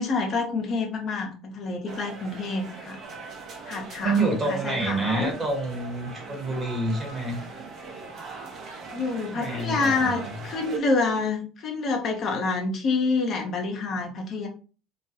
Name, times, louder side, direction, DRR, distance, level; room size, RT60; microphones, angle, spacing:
voice 1, 0.0-3.0 3.6-4.2 4.5-5.3 8.9-14.5, left 3 dB, 45° left, 2 dB, 0.6 m, -27 dB
sound 1, 1.9-10.8, right 4 dB, 50° right, 0.8 m, -40 dB
voice 2, 4.0-7.4 9.3-10.3, right 2 dB, 25° right, 1 dB, 1.2 m, -27 dB
2.3 x 2.2 x 2.7 m, 0.37 s
hypercardioid pair, 70°, 0 cm